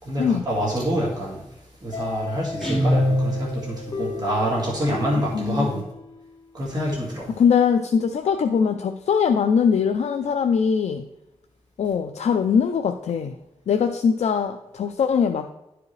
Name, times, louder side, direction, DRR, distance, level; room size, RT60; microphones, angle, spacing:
voice 1, 0.0-1.4 1.8-5.8 6.5-7.3, equal, 35° right, -5 dB, 1.9 m, -26 dB
sound 1, 1.9-6.6, left 5 dB, 40° left, 1.4 m, -35 dB
Guitar, 2.6-3.9, equal, 5° left, 2.4 m, -23 dB
voice 2, 5.3-5.8 7.3-11.0 11.8-13.3 13.7-15.5, left 6 dB, 85° left, 6 dB, 0.4 m, -21 dB
11.5 x 4.8 x 3.2 m, 0.93 s
wide cardioid pair, 165°, 11 cm